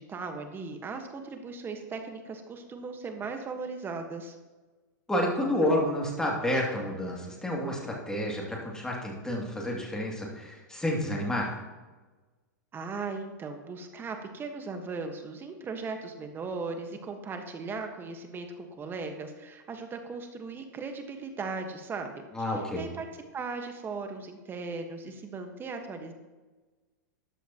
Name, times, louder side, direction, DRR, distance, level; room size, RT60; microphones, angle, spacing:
voice 1, 0.0-4.3 12.7-23.1 23.3-26.1, right 4 dB, 20° right, 5 dB, 1.5 m, -38 dB
voice 2, 5.1-11.5 22.3-22.9, left 1 dB, 5° left, -2 dB, 2.7 m, -30 dB
13.5 x 10.0 x 3.1 m, 1.3 s
hypercardioid pair, 125°, 10 cm